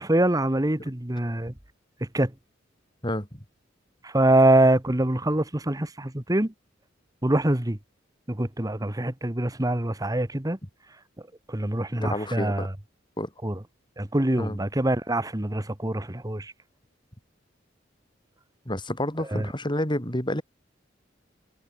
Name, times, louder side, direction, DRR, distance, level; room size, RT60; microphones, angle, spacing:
voice 1, 0.0-1.5 2.0-2.3 4.0-6.5 7.2-7.8 8.3-10.6 11.5-12.7 13.4-13.6 14.0-16.5 19.2-19.5, right 1 dB, 20° right, 1.4 m, -24 dB
voice 2, 12.0-12.7 13.2-13.3 14.4-14.6 18.7-20.4, left 1 dB, 25° left, 7.1 m, -29 dB
head